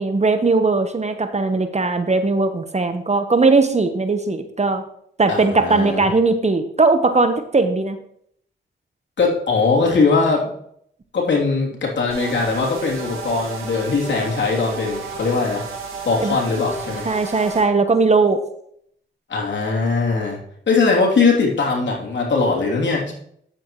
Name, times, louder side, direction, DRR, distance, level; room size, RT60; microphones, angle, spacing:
voice 1, 0.0-4.8 5.2-8.0 16.2-16.4 17.0-18.4, right 3 dB, 35° right, 8 dB, 1.1 m, -18 dB
voice 2, 5.3-6.1 9.2-10.5 11.1-15.6 16.0-17.0 19.3-20.4 20.7-23.1, left 4 dB, 60° left, -2 dB, 3.0 m, -20 dB
sound 1, 12.1-17.6, right 3 dB, 85° right, 2.0 m, -33 dB
9.6 x 7.7 x 3.1 m, 0.68 s
supercardioid pair, 45°, 21 cm